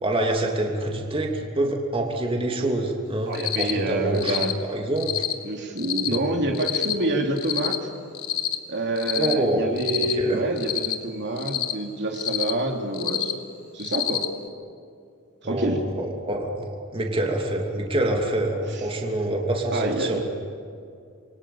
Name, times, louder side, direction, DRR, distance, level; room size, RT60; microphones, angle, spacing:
voice 1, 0.0-5.1 6.1-6.3 9.1-9.7 9.9-10.4 15.4-15.7 16.0-20.2, right 1 dB, 25° right, 1 dB, 3.0 m, -26 dB
Cricket, 3.3-3.7 4.1-4.5 5.0-5.3 5.8-6.2 6.5-6.9 7.4-7.8 8.1-8.6 9.0-9.3 9.8-10.1 10.6-10.9 11.4-11.7 12.1-12.5 12.9-13.3 13.8-14.3, left 12 dB, 85° left, 1.7 m, -27 dB
voice 2, 3.3-4.5 5.4-7.9 8.7-13.3 13.7-14.2 15.4-15.8 18.7-18.8 19.7-20.2, right 1 dB, 55° right, 2 dB, 3.1 m, -27 dB
28.0 x 23.0 x 8.7 m, 2.3 s
head